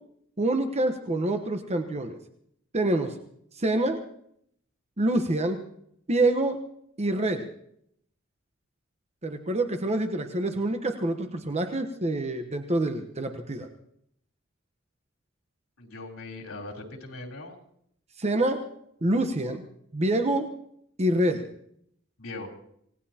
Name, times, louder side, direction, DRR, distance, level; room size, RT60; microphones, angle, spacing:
voice 1, 0.4-2.2 2.7-3.2 3.5-4.0 5.0-5.6 6.1-6.6 7.0-7.5 9.2-13.7 18.2-18.6 19.0-19.6 19.9-20.5 21.0-21.4, right 1 dB, 30° right, 6 dB, 1.1 m, -26 dB
voice 2, 15.8-17.6 22.2-22.5, left 2 dB, 80° left, 1 dB, 3.6 m, -40 dB
27.5 x 18.0 x 2.9 m, 0.71 s
head